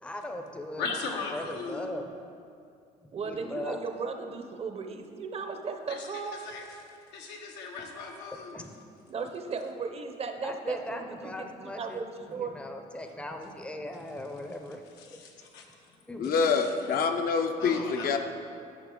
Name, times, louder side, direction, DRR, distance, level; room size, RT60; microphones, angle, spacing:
voice 1, 0.0-2.1 3.0-3.8 8.5-8.7 10.4-14.8 15.1-15.2 16.1-16.5, left 1 dB, 5° left, 4 dB, 0.6 m, -39 dB
voice 2, 0.8-1.9 5.9-6.1 6.4-6.8 7.1-8.6 15.0-15.6 16.3-16.7 17.6-18.2, left 4 dB, 90° left, 1 dB, 1.1 m, -38 dB
voice 3, 3.1-6.4 9.1-12.5, right 5 dB, 35° right, 6 dB, 0.6 m, -36 dB
voice 4, 16.2-18.2, left 5 dB, 60° left, 5 dB, 0.7 m, -26 dB
9.6 x 5.4 x 3.8 m, 2.4 s
cardioid pair, 110°, 17 cm